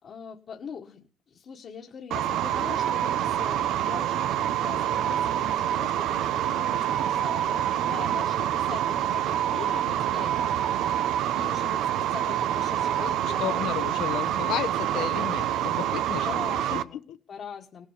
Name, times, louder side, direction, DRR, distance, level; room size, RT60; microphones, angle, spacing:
voice 1, 0.0-13.7 16.2-17.0 17.3-17.9, left 6 dB, 40° left, -2 dB, 1.8 m, -42 dB
sound 1, 2.1-16.8, right 11 dB, 65° right, 1.0 m, -26 dB
voice 2, 13.0-16.4 16.7-16.8 17.1-17.2, left 12 dB, 65° left, 12 dB, 1.3 m, -33 dB
19.0 x 7.0 x 9.0 m, 0.38 s
cardioid pair, 145°, 0 cm